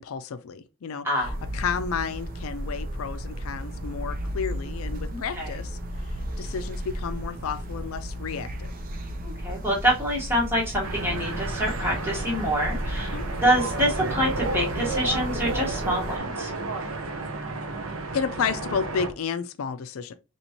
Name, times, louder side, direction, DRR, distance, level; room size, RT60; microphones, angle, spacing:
voice 1, 0.0-5.8 6.4-8.7 13.1-13.3 18.1-20.1, left 6 dB, 80° left, 0.4 m, -31 dB
voice 2, 1.0-1.3 5.1-5.6 9.2-13.1 13.4-16.5, equal, 10° right, 1.2 m, -26 dB
sound 1, 1.2-16.2, equal, 40° right, 0.6 m, -34 dB
sound 2, 10.8-19.1, right 3 dB, 80° right, 0.8 m, -32 dB
4.4 x 3.0 x 2.8 m
head